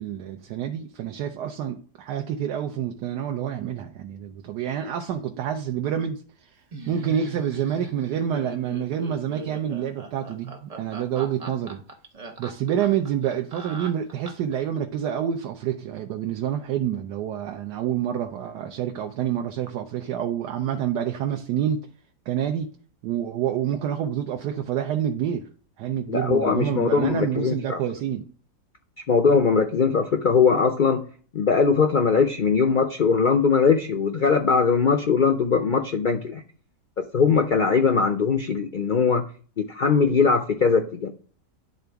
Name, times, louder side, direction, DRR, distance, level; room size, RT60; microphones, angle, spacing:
voice 1, 0.0-6.2 6.9-11.8 12.4-21.8 22.3-22.7 23.0-25.4 25.8-28.3, right 9 dB, 85° right, 1.3 m, -28 dB
Laughter, 6.7-14.6, right 3 dB, 30° right, 0.8 m, -39 dB
voice 2, 26.1-27.8 29.1-31.0 31.3-36.4 37.1-39.2 39.6-41.1, left 5 dB, 85° left, 0.4 m, -20 dB
11.0 x 3.9 x 3.4 m
omnidirectional pair, 1.7 m